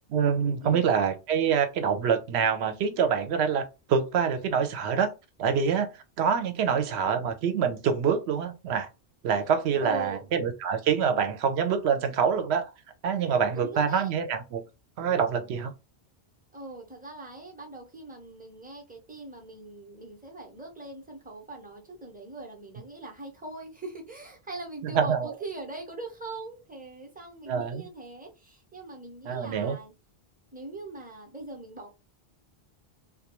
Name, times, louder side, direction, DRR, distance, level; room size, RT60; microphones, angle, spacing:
voice 1, 0.1-3.6 3.9-5.1 5.4-5.9 6.2-8.9 9.2-12.7 13.0-14.6 15.0-15.7 24.8-25.3 27.5-27.9 29.3-29.8, right 7 dB, 75° right, 0.8 m, -26 dB
voice 2, 9.8-10.3 13.5-14.1 16.5-29.9 30.5-31.9, right 2 dB, 10° right, 0.6 m, -41 dB
2.3 x 2.2 x 2.9 m
omnidirectional pair, 1.1 m